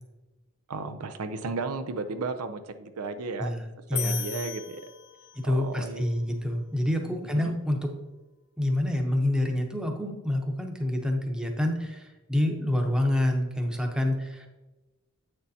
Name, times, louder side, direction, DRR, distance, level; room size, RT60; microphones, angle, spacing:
voice 1, 0.7-3.6 3.9-4.8 5.4-6.1 7.0-7.4, right 3 dB, 75° right, 8 dB, 0.5 m, -34 dB
voice 2, 3.9-4.2 5.4-7.9 8.6-14.5, left 1 dB, 5° right, 2 dB, 0.8 m, -27 dB
sound 1, 4.0-5.6, left 11 dB, 70° left, 0.7 m, -36 dB
8.2 x 6.6 x 2.8 m, 1.1 s
head